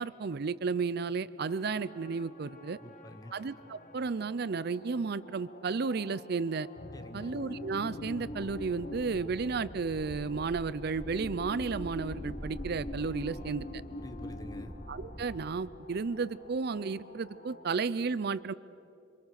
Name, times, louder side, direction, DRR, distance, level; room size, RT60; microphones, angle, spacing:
voice 1, 0.0-2.8 3.3-6.7 7.1-13.7 14.9-18.5, right 4 dB, 60° right, 17 dB, 0.5 m, -33 dB
sound 1, 1.4-17.6, left 1 dB, 45° left, 1.6 m, -47 dB
voice 2, 2.8-3.3 6.9-7.4 13.3-13.5 14.0-14.7, left 1 dB, 20° left, 8 dB, 1.3 m, -48 dB
sound 2, 6.8-11.5, left 2 dB, 65° left, 1.2 m, -49 dB
sound 3, 8.2-15.3, equal, ahead, 3.4 m, -45 dB
27.0 x 25.0 x 6.5 m, 2.7 s
head